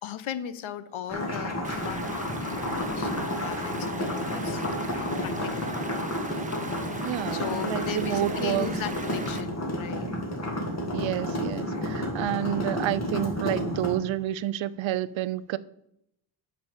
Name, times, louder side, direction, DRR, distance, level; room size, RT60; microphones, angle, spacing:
voice 1, 0.0-4.6 5.2-5.8 7.3-10.1, left 10 dB, 80° left, 14 dB, 0.8 m, -37 dB
sound 1, 1.1-14.0, left 1 dB, 35° left, 2.3 m, -31 dB
Stream, 1.6-9.4, right 3 dB, 15° right, 0.9 m, -39 dB
voice 2, 7.0-8.7 10.9-15.6, right 13 dB, 75° right, 18 dB, 0.6 m, -29 dB
8.7 x 4.2 x 7.3 m, 0.78 s
cardioid pair, 110°, 47 cm